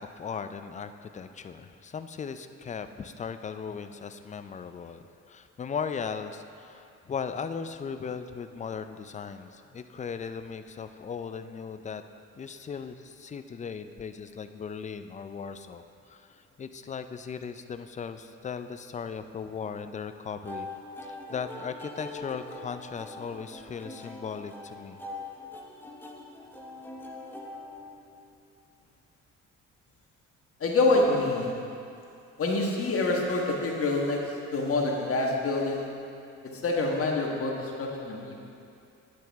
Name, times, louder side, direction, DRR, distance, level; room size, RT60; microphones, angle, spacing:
voice 1, 0.0-12.0 12.3-20.7 21.0-25.0, left 6 dB, 25° left, 9 dB, 0.4 m, -38 dB
sound 1, 20.4-28.4, left 2 dB, 5° left, 0.9 m, -43 dB
voice 2, 30.6-31.5 32.4-35.9 36.5-38.3, left 2 dB, 50° left, -1 dB, 1.4 m, -26 dB
9.2 x 7.7 x 3.5 m, 2.6 s
cardioid pair, 90°, 30 cm